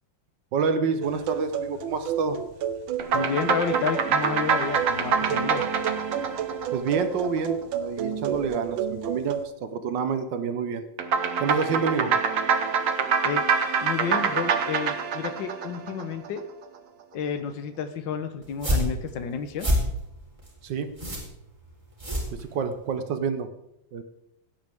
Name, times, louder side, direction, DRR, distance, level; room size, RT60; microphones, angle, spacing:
voice 1, 0.5-2.4 6.7-10.9 11.4-12.1 20.6-20.9 22.3-23.5 23.9-24.0, right 5 dB, 70° right, 9 dB, 1.6 m, -28 dB
sound 1, 1.0-9.5, right 8 dB, 90° right, 1.5 m, -32 dB
sound 2, 3.0-7.6 11.0-16.4, right 6 dB, 55° right, 1.1 m, -26 dB
voice 2, 3.1-5.6 13.2-13.4 13.8-16.4 17.1-19.7, left 7 dB, 75° left, 9 dB, 1.7 m, -31 dB
sound 3, 18.4-22.9, equal, 15° right, 3.8 m, -28 dB
17.0 x 9.5 x 3.6 m, 0.83 s
omnidirectional pair, 2.1 m